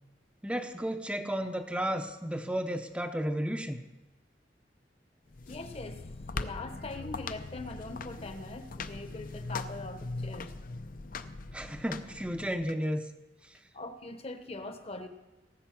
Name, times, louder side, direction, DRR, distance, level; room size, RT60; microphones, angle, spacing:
voice 1, 0.4-3.8 11.5-13.0, equal, 5° right, 5 dB, 0.6 m, -33 dB
sound 1, 5.3-12.7, left 3 dB, 50° left, 0.6 m, -41 dB
voice 2, 5.5-6.1 6.3-10.5 13.7-15.1, left 2 dB, 35° left, 8 dB, 1.0 m, -42 dB
18.0 x 8.0 x 5.9 m, 1.0 s
head